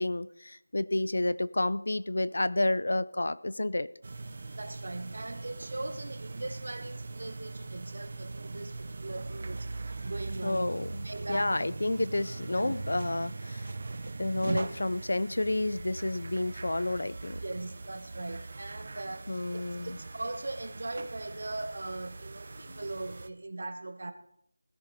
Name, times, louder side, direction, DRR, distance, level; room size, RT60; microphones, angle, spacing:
voice 1, 0.0-3.9 10.4-13.7 14.2-17.4 19.3-20.0 22.7-22.8, left 2 dB, 60° left, 17 dB, 0.5 m, -30 dB
sound 1, 4.0-23.3, right 3 dB, 30° right, 0.5 m, -41 dB
voice 2, 4.6-10.7 11.0-11.6 12.6-12.7 17.4-24.1, right 2 dB, 50° right, 10 dB, 1.2 m, -40 dB
17.0 x 10.5 x 4.1 m, 0.72 s
figure-of-eight pair, 175°, 0 cm